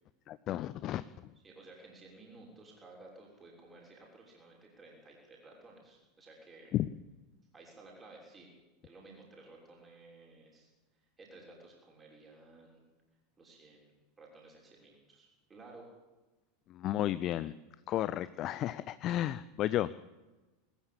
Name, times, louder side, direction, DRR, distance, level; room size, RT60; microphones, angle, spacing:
voice 1, 0.3-1.0 6.7-6.9 16.7-17.5 17.9-19.9, left 13 dB, 40° left, 16 dB, 0.6 m, -33 dB
voice 2, 1.4-6.8 7.5-8.5 8.8-10.7 11.2-12.8 13.4-15.9, right 2 dB, 20° right, -2 dB, 6.4 m, -55 dB
20.5 x 14.5 x 8.8 m, 1.1 s
figure-of-eight pair, 85°, 0 cm